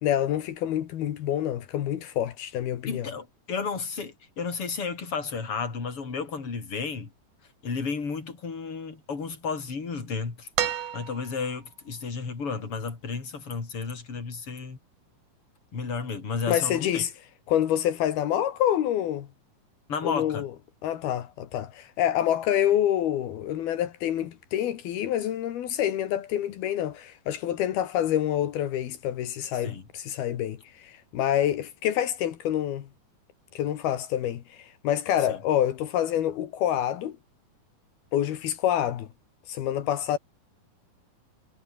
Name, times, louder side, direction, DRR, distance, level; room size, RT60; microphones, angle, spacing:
voice 1, 0.0-3.1 16.5-17.1 17.5-19.3 20.0-20.5 20.8-32.9 33.6-37.2 38.1-39.1 39.5-40.2, left 11 dB, 80° left, 3.6 m, -27 dB
voice 2, 2.9-7.1 7.6-10.5 10.9-14.8 15.7-17.0 19.9-20.5 29.6-29.8 35.3-35.4, left 5 dB, 35° left, 5.1 m, -32 dB
sound 1, 10.6-11.6 13.1-13.2, right 9 dB, 55° right, 3.2 m, -30 dB
omnidirectional pair, 4.4 m